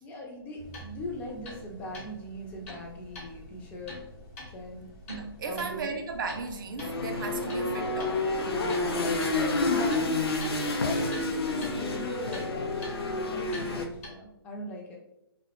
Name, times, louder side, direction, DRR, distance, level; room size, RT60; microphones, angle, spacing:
voice 1, 0.0-4.0 4.5-4.9 5.5-5.9 8.9-10.9 11.4-12.8 13.2-15.0, equal, 10° left, -1 dB, 0.4 m, -39 dB
sound 1, 0.6-14.1, left 1 dB, 35° left, 0.7 m, -46 dB
voice 2, 5.1-8.2, right 4 dB, 55° right, 5 dB, 0.4 m, -35 dB
sound 2, 6.8-13.8, left 2 dB, 75° left, 0.5 m, -29 dB
2.4 x 2.0 x 2.8 m, 0.83 s
hypercardioid pair, 145°, 13 cm